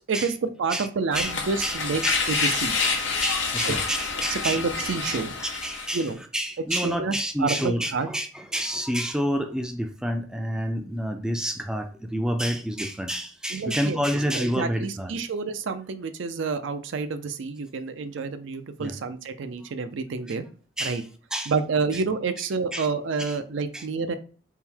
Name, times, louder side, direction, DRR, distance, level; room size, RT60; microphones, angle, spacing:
voice 1, 0.1-2.8 4.3-5.3 5.9-6.2 6.7-8.1 13.5-14.0 14.3-20.4 20.8-21.0 21.5-24.1, right 4 dB, 70° right, 0.4 m, -28 dB
sound 1, 1.1-6.0, left 4 dB, 65° left, 0.9 m, -28 dB
voice 2, 1.6-2.6 2.8-6.1 6.3-15.1 18.8-18.9 20.8-21.0 21.3-21.5 21.9-22.0 22.7-22.9 23.3-23.4 23.7-23.9, equal, 5° right, 0.3 m, -29 dB
3.6 x 2.1 x 4.4 m
head